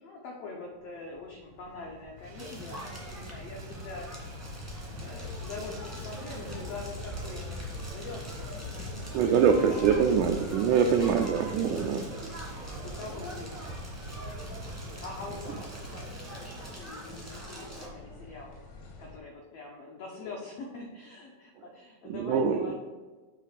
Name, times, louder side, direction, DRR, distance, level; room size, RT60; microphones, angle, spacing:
voice 1, 0.0-4.1 5.0-7.4 7.9-10.2 12.5-13.8 15.0-18.5 19.0-22.8, left 3 dB, 90° left, -1 dB, 1.4 m, -44 dB
sound 1, 0.7-19.2, left 3 dB, 70° left, 1.3 m, -45 dB
Motor vehicle (road), 2.2-16.8, right 2 dB, 70° right, 1.4 m, -45 dB
Crackle, 2.4-17.9, equal, 15° right, 0.5 m, -44 dB
voice 2, 9.1-12.1 22.1-22.7, right 7 dB, 85° right, 4 dB, 1.8 m, -24 dB
8.2 x 3.2 x 5.8 m, 1.3 s
omnidirectional pair, 4.1 m